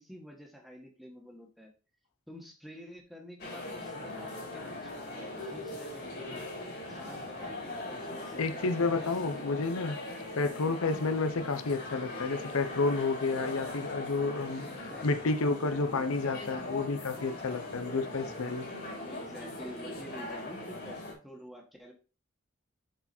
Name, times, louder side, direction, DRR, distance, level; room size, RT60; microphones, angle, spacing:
voice 1, 0.0-1.7 2.3-6.4 6.9-9.6 10.4-11.0 11.5-11.6 14.1-16.4 16.6-16.9 18.2-18.3 19.0-21.9, equal, ahead, 1.7 m, -49 dB
sound 1, 3.4-21.1, left 2 dB, 50° left, 3.4 m, -40 dB
voice 2, 8.4-14.7 15.0-18.7, left 3 dB, 85° left, 0.7 m, -30 dB
7.6 x 4.7 x 4.3 m
head